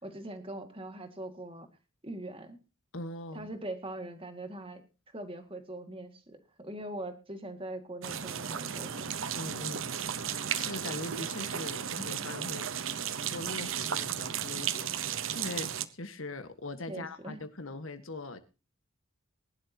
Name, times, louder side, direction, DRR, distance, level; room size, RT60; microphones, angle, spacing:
voice 1, 0.0-1.7 2.0-2.6 3.3-4.8 5.1-9.1 16.9-17.4, right 1 dB, 25° right, 2.1 m, -42 dB
voice 2, 2.9-3.5 9.3-10.0 10.3-12.7 13.3-18.4, left 2 dB, 70° left, 1.5 m, -41 dB
sound 1, 8.0-15.9, right 8 dB, 65° right, 0.9 m, -34 dB
21.0 x 11.5 x 2.9 m
head